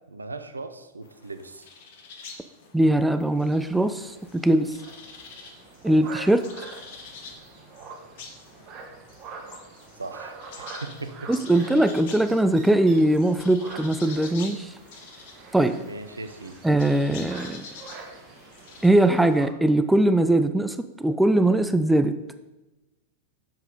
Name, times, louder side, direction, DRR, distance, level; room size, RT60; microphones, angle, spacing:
voice 1, 0.1-1.7 5.9-6.0 10.0-10.3 10.8-11.3 15.8-16.6, right 3 dB, 80° right, 9 dB, 0.5 m, -38 dB
sound 1, 1.0-18.9, left 5 dB, 55° left, 1.2 m, -47 dB
voice 2, 2.7-4.8 5.8-6.5 11.3-14.7 15.5-15.8 16.6-17.6 18.8-22.2, right 1 dB, 5° right, 10 dB, 0.4 m, -21 dB
sound 2, 3.4-19.5, right 4 dB, 35° right, 1.5 m, -45 dB
7.2 x 5.5 x 5.1 m, 1.0 s
figure-of-eight pair, 90°, 0 cm